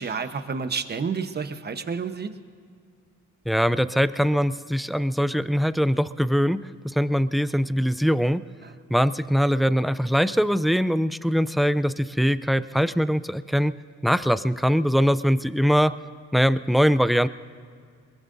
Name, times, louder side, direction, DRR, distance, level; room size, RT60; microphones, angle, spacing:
voice 1, 0.0-2.3 8.6-8.7, right 5 dB, 35° right, 9 dB, 1.0 m, -30 dB
voice 2, 3.5-8.4 8.9-13.7 14.0-15.9 16.3-17.3, equal, ahead, 14 dB, 0.4 m, -22 dB
23.0 x 22.0 x 2.7 m, 2.2 s
cardioid pair, 90°, 30 cm